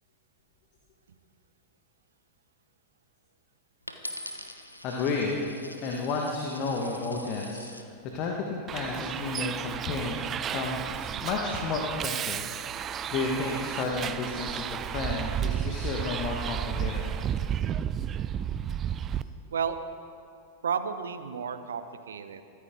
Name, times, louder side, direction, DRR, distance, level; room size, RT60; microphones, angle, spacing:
Coin (dropping), 3.9-7.9 8.6-9.0, left 1 dB, 85° left, 1.1 m, -43 dB
voice 1, 4.8-5.3 5.8-7.8 8.1-12.4 12.7-12.8 13.1-17.1, left 3 dB, 40° left, 0 dB, 1.8 m, -32 dB
Bus, 8.7-19.2, right 9 dB, 25° right, 0.5 m, -32 dB
voice 2, 20.6-22.4, right 7 dB, 65° right, 10 dB, 1.0 m, -32 dB
23.5 x 14.5 x 3.9 m, 2.4 s
figure-of-eight pair, 90°, 0 cm